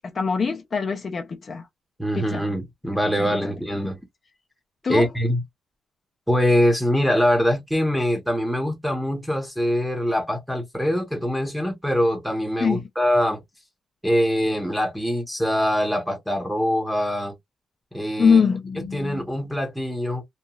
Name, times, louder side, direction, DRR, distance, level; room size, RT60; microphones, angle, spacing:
voice 1, 0.1-1.7 2.2-2.5 3.2-3.3 4.8-5.1 12.6-12.9 18.2-19.2, left 5 dB, 40° left, 0.4 m, -23 dB
voice 2, 2.0-4.0 4.9-5.4 6.3-13.4 14.0-17.3 17.9-18.4 18.8-20.2, equal, ahead, 0.7 m, -23 dB
2.9 x 2.2 x 2.2 m
cardioid pair, 140°, 0 cm